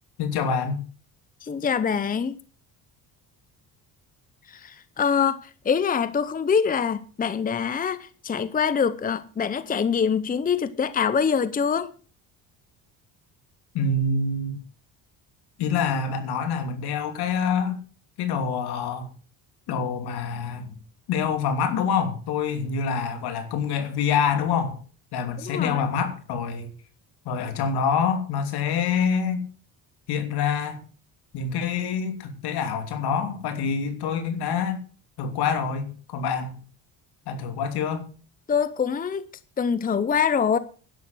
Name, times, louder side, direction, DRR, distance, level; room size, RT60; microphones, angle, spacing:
voice 1, 0.2-0.8 13.7-14.6 15.6-17.8 18.2-19.1 19.7-20.8 21.1-24.8 25.1-26.7 27.2-29.4 30.1-30.8 31.3-34.8 35.2-36.6 37.3-38.1, left 6 dB, 80° left, 3.0 m, -26 dB
voice 2, 1.4-2.4 4.5-11.9 25.4-25.9 38.5-39.3 39.6-40.6, left 6 dB, 20° left, 0.8 m, -24 dB
11.5 x 10.5 x 6.2 m
cardioid pair, 120°, 38 cm